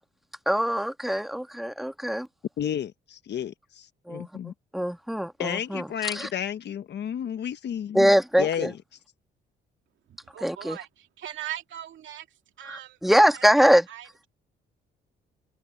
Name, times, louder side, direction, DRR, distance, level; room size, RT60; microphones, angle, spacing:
voice 1, 0.4-2.3 4.1-4.3 4.7-6.3 7.9-8.7 10.4-10.8 12.7-13.8, equal, ahead, 1.7 m, -23 dB
voice 2, 2.6-4.5 5.4-8.1 8.4-8.8, left 9 dB, 60° left, 1.2 m, -32 dB
voice 3, 10.1-12.3 12.6-13.0 13.3-13.5 13.9-14.3, right 12 dB, 75° right, 2.4 m, -40 dB
open air
cardioid pair, 90°, 20 cm